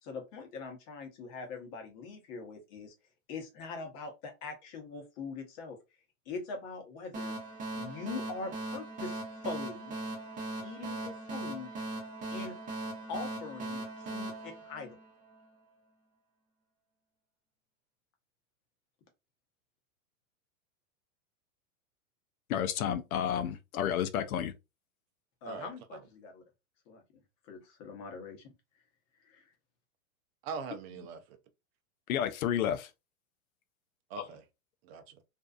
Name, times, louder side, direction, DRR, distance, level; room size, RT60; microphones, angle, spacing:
voice 1, 0.0-2.9 3.3-5.8 6.3-7.3 7.7-10.0 10.6-11.7 12.3-12.6 13.1-13.8 14.1-15.0 25.4-26.4 26.9-27.0 27.4-28.5 29.2-29.5, left 4 dB, 40° left, 1.0 m, -42 dB
sound 1, 7.1-15.5, right 2 dB, 20° right, 0.8 m, -39 dB
voice 2, 22.5-24.5 32.1-32.9 34.2-34.3, left 9 dB, 80° left, 0.5 m, -31 dB
voice 3, 25.5-26.0 30.4-31.4 34.1-34.4 34.8-35.2, right 5 dB, 45° right, 0.5 m, -42 dB
2.6 x 2.3 x 2.3 m
hypercardioid pair, 125°, 42 cm